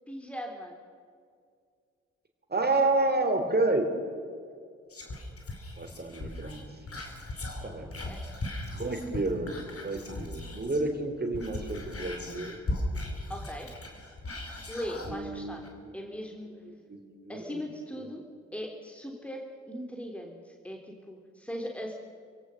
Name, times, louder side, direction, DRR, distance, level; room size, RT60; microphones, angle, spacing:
voice 1, 0.1-0.7 7.8-8.2 13.3-13.7 14.7-15.6 15.9-16.5 17.3-18.2 18.5-19.4 19.7-21.9, equal, 5° left, 1 dB, 3.4 m, -39 dB
voice 2, 2.5-3.9 5.8-6.6 7.6-7.9 8.7-12.6 15.1-15.6 15.8-15.9 16.9-17.6 18.0-18.1, right 2 dB, 25° right, 5 dB, 3.7 m, -30 dB
Whispering, 4.9-10.9 11.2-15.2 15.6-15.7, left 2 dB, 40° left, 5.0 m, -38 dB
27.0 x 17.5 x 6.5 m, 2.2 s
figure-of-eight pair, 40°, 35 cm